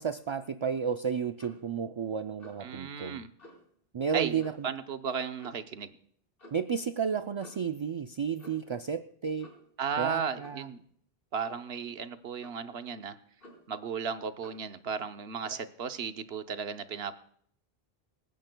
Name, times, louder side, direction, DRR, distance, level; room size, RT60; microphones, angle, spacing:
voice 1, 0.0-3.2 3.9-4.5 6.5-9.5 10.0-10.7, right 7 dB, 45° right, 8 dB, 0.4 m, -32 dB
Clock, 1.4-1.7 2.4-2.7 3.4-3.6 4.4-4.7 5.4-5.7 6.4-6.6 7.4-7.7 8.4-8.7 9.4-9.7 10.4-10.7 11.4-11.7 12.4-12.7 13.4-13.8 14.4-14.7 15.4-15.7, left 1 dB, 65° left, 4.6 m, -53 dB
voice 2, 2.6-3.3 4.1-6.0 9.8-10.8 11.3-13.2 13.7-17.2, right 6 dB, 80° right, 9 dB, 1.1 m, -35 dB
26.0 x 10.0 x 2.2 m, 0.63 s
omnidirectional pair, 1.0 m